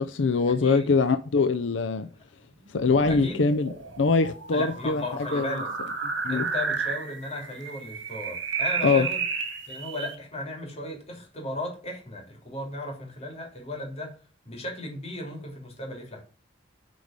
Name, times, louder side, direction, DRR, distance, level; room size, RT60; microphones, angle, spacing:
voice 1, 0.0-2.1 2.7-5.5 6.2-6.5 8.8-9.1, left 4 dB, 85° left, 0.6 m, -23 dB
voice 2, 0.6-0.9 3.1-3.5 4.5-5.7 6.3-9.2 9.7-14.1 14.4-16.2, left 1 dB, 35° left, 3.2 m, -35 dB
sound 1, 2.7-10.2, right 5 dB, 80° right, 2.3 m, -32 dB
9.2 x 4.8 x 5.2 m
head